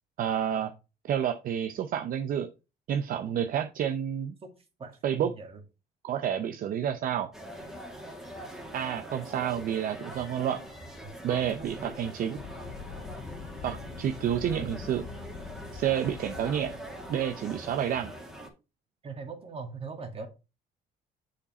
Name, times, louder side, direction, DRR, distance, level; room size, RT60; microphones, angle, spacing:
voice 1, 0.2-0.7 1.1-2.5 2.9-4.3 5.0-5.3 6.0-7.3 8.7-10.6 11.2-12.4 13.6-15.1 15.7-16.8 17.1-18.1, right 9 dB, 55° right, 8 dB, 0.7 m, -29 dB
voice 2, 4.8-5.6 11.0-11.1 11.5-11.9 19.0-20.3, right 4 dB, 35° right, 6 dB, 2.0 m, -41 dB
sound 1, 7.3-18.5, equal, 5° right, 2.1 m, -43 dB
sound 2, 12.4-17.6, left 6 dB, 65° left, 1.5 m, -44 dB
7.0 x 5.1 x 4.2 m, 0.28 s
cardioid pair, 110°, 17 cm